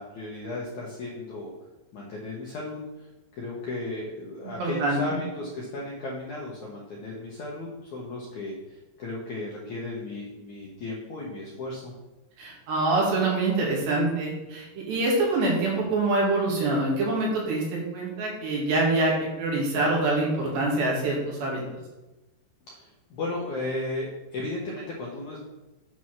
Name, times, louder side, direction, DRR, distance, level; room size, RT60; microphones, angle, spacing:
voice 1, 0.0-1.5 1.9-2.8 3.3-11.9 22.7-25.4, left 2 dB, 70° left, -4 dB, 1.8 m, -35 dB
voice 2, 4.4-5.0 12.4-21.6, right 2 dB, 70° right, -3 dB, 4.3 m, -25 dB
8.9 x 4.8 x 5.8 m, 1.1 s
omnidirectional pair, 5.1 m